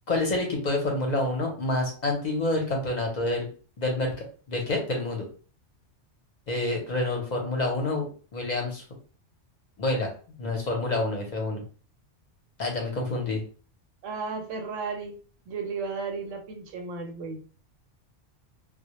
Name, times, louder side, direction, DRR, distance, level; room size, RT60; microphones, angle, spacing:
voice 1, 0.1-3.5 3.8-5.3 6.5-8.1 8.3-8.8 9.8-10.1 10.4-11.6 12.6-13.4, left 2 dB, 50° left, 1 dB, 0.6 m, -28 dB
voice 2, 14.0-15.1 15.5-17.4, right 4 dB, 85° right, 4 dB, 0.9 m, -34 dB
2.1 x 2.0 x 2.9 m, 0.39 s
omnidirectional pair, 1.2 m